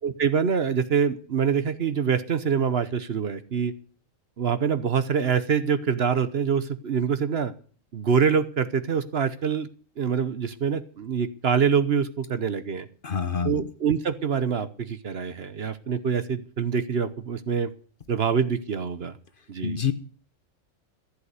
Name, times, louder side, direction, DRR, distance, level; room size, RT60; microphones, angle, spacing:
voice 1, 0.0-3.7 4.4-7.5 7.9-9.7 10.0-12.9 13.4-17.7 18.1-19.1 19.5-19.8, right 6 dB, 55° right, 12 dB, 1.1 m, -25 dB
voice 2, 13.0-13.5 19.6-19.9, left 7 dB, 45° left, 11 dB, 1.0 m, -26 dB
14.5 x 8.0 x 8.2 m, 0.44 s
omnidirectional pair, 1.4 m